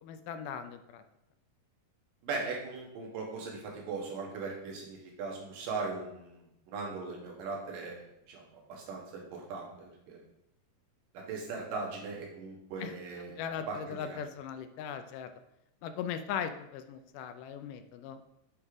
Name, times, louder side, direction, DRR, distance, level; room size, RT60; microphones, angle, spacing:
voice 1, 0.0-1.0 12.8-15.3 15.8-18.2, left 8 dB, 80° left, 9 dB, 2.1 m, -39 dB
voice 2, 2.2-8.4 8.7-10.2 11.1-14.2, right 4 dB, 80° right, -1 dB, 3.1 m, -39 dB
8.5 x 3.6 x 4.9 m, 0.82 s
omnidirectional pair, 3.8 m